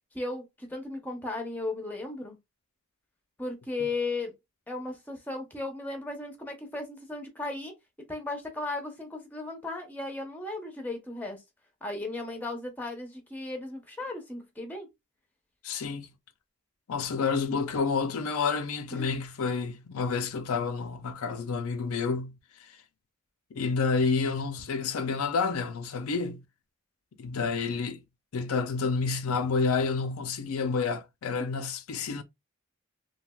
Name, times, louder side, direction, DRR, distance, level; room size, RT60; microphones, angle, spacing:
voice 1, 0.1-2.4 3.4-4.3 4.7-7.7 8.1-11.4 11.8-14.9 18.9-19.2 31.4-31.5, left 2 dB, 10° left, 0.7 m, -36 dB
voice 2, 15.6-16.1 16.9-22.3 23.5-26.4 27.2-28.0 28.3-32.2, left 4 dB, 90° left, 0.5 m, -29 dB
3.2 x 2.3 x 2.2 m
head